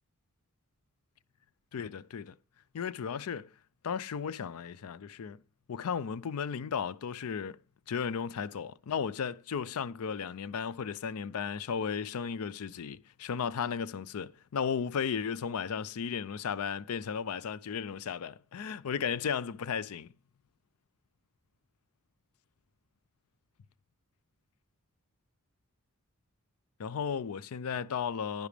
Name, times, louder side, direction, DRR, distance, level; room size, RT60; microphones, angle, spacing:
voice 1, 1.7-2.3 2.7-3.5 3.8-5.4 5.7-7.6 7.9-20.1 26.8-28.5, left 6 dB, 80° left, 0.4 m, -35 dB
10.5 x 10.0 x 3.3 m
head